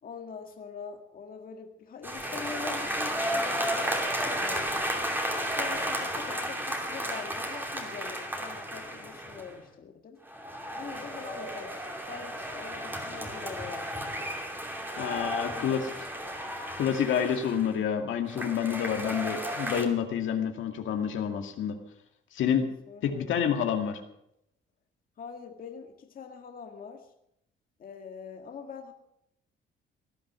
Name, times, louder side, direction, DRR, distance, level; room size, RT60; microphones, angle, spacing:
voice 1, 0.0-4.9 5.5-10.2 10.7-14.3 15.2-15.9 16.2-16.4 22.9-23.5 25.2-27.1 27.8-28.9, left 6 dB, 45° left, 3 dB, 1.8 m, -43 dB
sound 1, 2.0-9.6 10.2-17.8 18.3-19.8, equal, 10° right, 2.6 m, -33 dB
voice 2, 15.0-15.8 16.8-21.8 22.3-22.7 23.0-24.0, left 8 dB, 70° left, 4 dB, 2.1 m, -28 dB
18.0 x 11.5 x 6.2 m, 0.78 s
cardioid pair, 135°, 21 cm